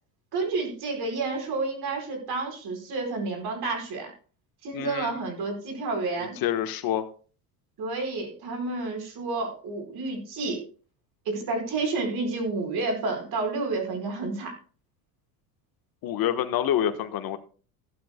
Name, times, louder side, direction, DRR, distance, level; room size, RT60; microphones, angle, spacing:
voice 1, 0.3-4.1 4.6-6.4 7.8-10.6 11.2-14.5, right 3 dB, 55° right, 4 dB, 4.8 m, -30 dB
voice 2, 4.7-5.1 6.4-7.0 16.0-17.4, left 10 dB, 50° left, 9 dB, 1.3 m, -27 dB
15.5 x 12.0 x 2.2 m, 0.39 s
hypercardioid pair, 80°, 45 cm